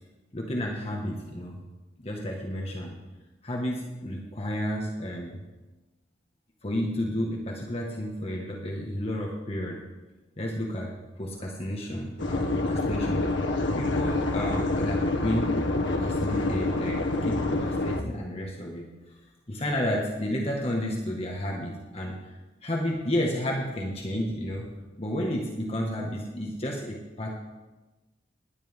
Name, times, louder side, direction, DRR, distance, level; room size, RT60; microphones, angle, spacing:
voice 1, 0.3-1.6 2.0-3.0 3.4-5.4 6.6-9.8 10.4-13.3 13.8-15.5 15.8-18.9 19.5-22.2 22.6-27.4, equal, 35° left, -1 dB, 1.7 m, -31 dB
sound 1, 12.2-18.0, left 2 dB, 85° left, 1.2 m, -27 dB
19.0 x 10.5 x 3.7 m, 1.1 s
head